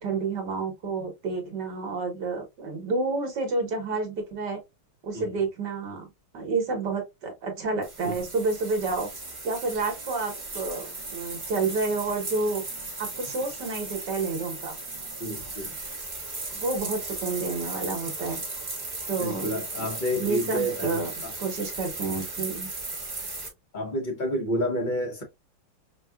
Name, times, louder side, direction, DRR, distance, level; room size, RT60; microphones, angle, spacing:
voice 1, 0.0-4.6 5.0-6.1 6.3-9.1 9.4-12.6 13.0-14.8 16.5-18.4 19.1-21.1 21.4-22.7, right 3 dB, 55° right, 1.7 m, -30 dB
sound 1, 7.8-23.5, right 3 dB, 25° right, 1.0 m, -36 dB
voice 2, 15.2-15.8 19.2-21.3 23.7-25.2, equal, 30° left, 1.0 m, -30 dB
5.5 x 2.4 x 2.3 m
omnidirectional pair, 2.3 m